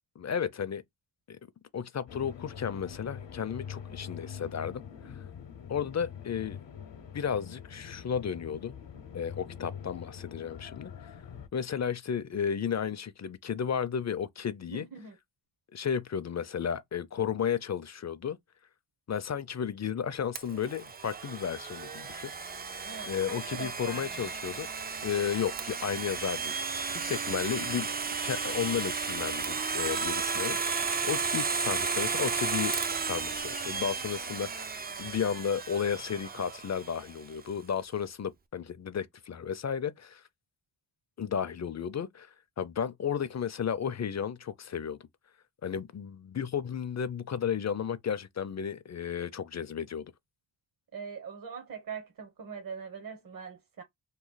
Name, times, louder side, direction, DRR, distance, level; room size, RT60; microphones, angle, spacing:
voice 1, 0.2-0.8 1.3-1.4 1.7-5.2 5.7-6.6 7.1-8.7 9.1-11.1 11.5-14.9 15.7-18.4 19.1-22.3 23.1-24.7 25.0-26.6 26.9-27.9 28.2-40.2 41.2-45.0 45.6-50.1, left 7 dB, 40° left, 0.4 m, -33 dB
sound 1, 2.1-11.5, left 7 dB, 75° left, 0.8 m, -44 dB
voice 2, 14.7-15.2 22.8-24.3 27.0-27.2 50.9-53.8, right 6 dB, 50° right, 0.9 m, -42 dB
Domestic sounds home sounds, 20.4-37.1, right 5 dB, 25° right, 0.3 m, -34 dB
3.1 x 2.3 x 3.8 m
wide cardioid pair, 85°, 45 cm